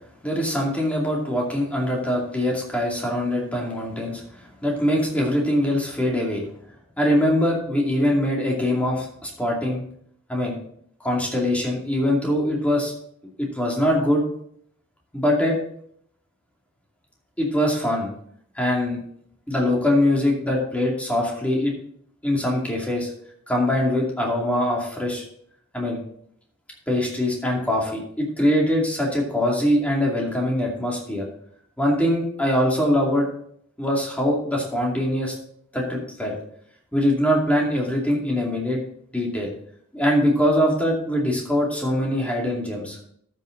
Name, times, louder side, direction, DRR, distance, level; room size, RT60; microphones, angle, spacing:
voice 1, 0.2-4.2 4.6-6.4 7.0-9.8 10.3-10.6 11.0-12.9 13.4-14.2 15.1-15.6 17.4-18.1 18.6-19.0 19.5-21.7 22.2-23.1 23.5-25.3 25.7-26.0 26.9-31.3 31.8-33.3 33.8-35.3 35.7-36.4 36.9-38.8 39.1-39.5 39.9-43.0, left 1 dB, 5° left, -2 dB, 2.5 m, -22 dB
13.0 x 6.5 x 3.9 m, 0.66 s
head